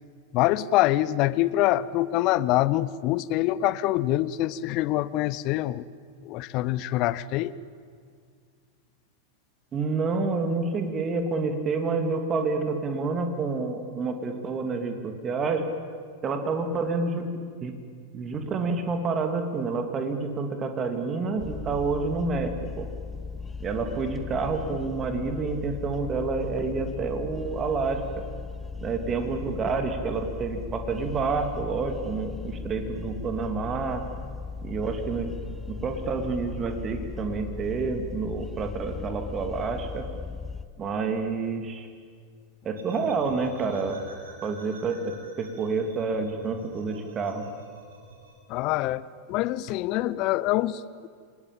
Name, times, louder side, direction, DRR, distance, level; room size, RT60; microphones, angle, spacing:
voice 1, 0.3-5.8 6.2-7.6 48.5-49.0 49.3-51.1, left 15 dB, 40° left, 18 dB, 0.7 m, -25 dB
voice 2, 9.7-15.7 16.2-17.2 17.6-17.8 18.1-22.9 23.6-28.2 28.8-34.0 34.6-40.0 40.8-41.9 42.6-44.0 44.4-47.4, right 4 dB, 25° right, 6 dB, 2.8 m, -28 dB
sound 1, 21.4-40.6, left 4 dB, 15° left, 0.9 m, -38 dB
sound 2, 42.8-48.3, right 3 dB, 60° right, 7.7 m, -47 dB
28.0 x 19.0 x 9.0 m, 2.1 s
figure-of-eight pair, 90°, 0 cm